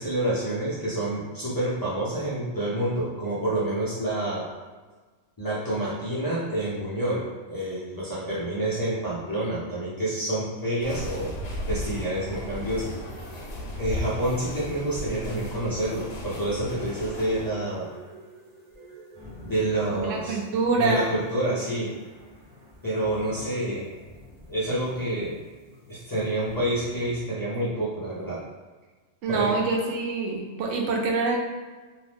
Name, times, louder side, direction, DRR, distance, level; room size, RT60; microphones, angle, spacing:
voice 1, 0.0-4.5 5.4-11.3 11.7-12.9 13.3-13.4 13.7-17.9 19.4-20.4 20.8-22.0 22.8-23.9 24.5-25.4 25.9-28.4 29.3-29.5, right 1 dB, 30° left, -10 dB, 0.4 m, -28 dB
sound 1, 10.8-17.5, left 1 dB, 65° left, 0.8 m, -35 dB
sound 2, 11.2-27.2, equal, 40° right, 0.9 m, -47 dB
voice 2, 19.9-21.1 29.2-31.4, right 3 dB, 75° right, -1 dB, 0.9 m, -25 dB
2.7 x 2.0 x 3.2 m, 1.3 s
omnidirectional pair, 1.3 m